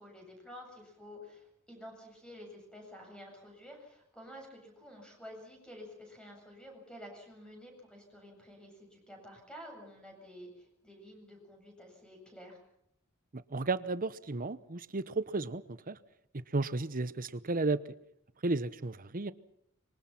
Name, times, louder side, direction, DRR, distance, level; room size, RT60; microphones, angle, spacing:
voice 1, 0.0-12.6, equal, 5° left, 7.9 m, -50 dB
voice 2, 13.3-16.0 16.3-17.8 18.4-19.3, right 3 dB, 40° right, 0.9 m, -33 dB
26.0 x 23.5 x 5.9 m
head